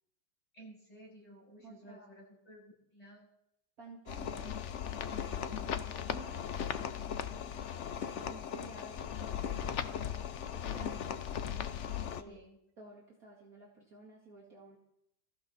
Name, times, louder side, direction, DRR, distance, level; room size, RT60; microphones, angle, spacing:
voice 1, 0.5-3.3 8.8-9.2 12.2-12.6, right 1 dB, 15° left, -5 dB, 7.7 m, -55 dB
voice 2, 1.6-2.2 3.8-4.6 4.9-11.1 12.1-12.4 12.8-14.8, right 3 dB, 45° right, -3 dB, 2.5 m, -54 dB
sound 1, 4.1-12.2, left 8 dB, 80° left, 0.6 m, -38 dB
21.5 x 15.0 x 4.2 m, 0.80 s
omnidirectional pair, 2.3 m